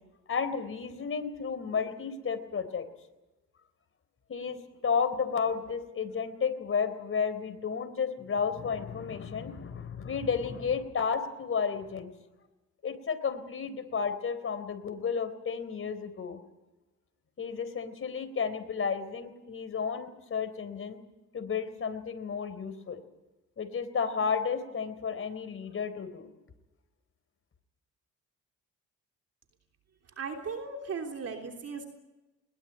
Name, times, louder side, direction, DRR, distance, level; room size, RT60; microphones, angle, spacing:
voice 1, 0.3-2.9 4.3-12.1 12.8-16.4 17.4-21.0 21.3-23.0 23.6-26.3, left 6 dB, 45° left, 9 dB, 3.8 m, -32 dB
voice 2, 30.2-31.9, right 5 dB, 55° right, 3 dB, 3.3 m, -37 dB
21.0 x 21.0 x 9.2 m, 1.0 s
cardioid pair, 90°, 30 cm